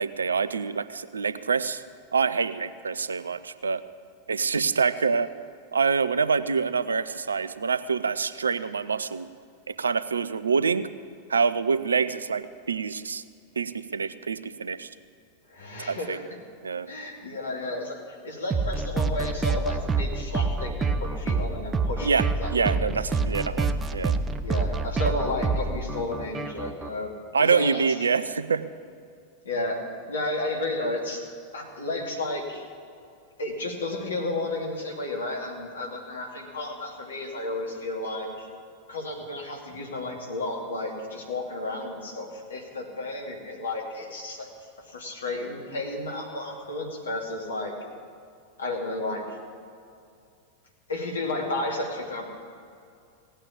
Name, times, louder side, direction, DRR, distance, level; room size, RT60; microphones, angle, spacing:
voice 1, 0.0-1.8 2.1-3.8 4.3-5.3 5.7-9.3 9.7-10.9 11.3-13.2 13.6-14.9 15.9-16.2 16.6-16.9 22.0-22.3 22.5-24.1 25.0-25.1 27.3-28.6, right 5 dB, 75° right, 14 dB, 0.5 m, -26 dB
voice 2, 15.5-16.4 16.9-23.2 24.4-27.8 29.4-31.2 31.5-32.6 33.4-38.5 38.9-44.5 44.8-47.7 48.6-49.2 50.9-52.3, left 2 dB, 70° left, 1 dB, 2.7 m, -32 dB
sound 1, 18.5-26.9, right 4 dB, 20° right, 0.7 m, -27 dB
17.0 x 9.0 x 8.6 m, 2.4 s
figure-of-eight pair, 90°, 0 cm